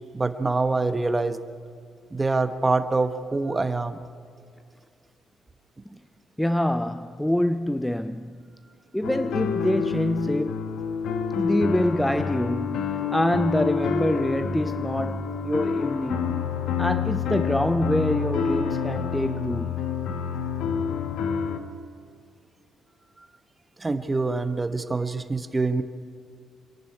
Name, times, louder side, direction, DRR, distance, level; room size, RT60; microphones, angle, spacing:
voice 1, 0.1-1.4 2.1-4.1 23.8-25.8, right 3 dB, 20° right, 1.1 m, -25 dB
voice 2, 6.4-8.4 8.9-10.7 11.4-16.4 16.8-19.7, left 1 dB, 5° left, 0.5 m, -25 dB
sound 1, 9.0-21.6, left 6 dB, 80° left, 1.4 m, -28 dB
26.0 x 11.0 x 9.8 m
cardioid pair, 90°, 0 cm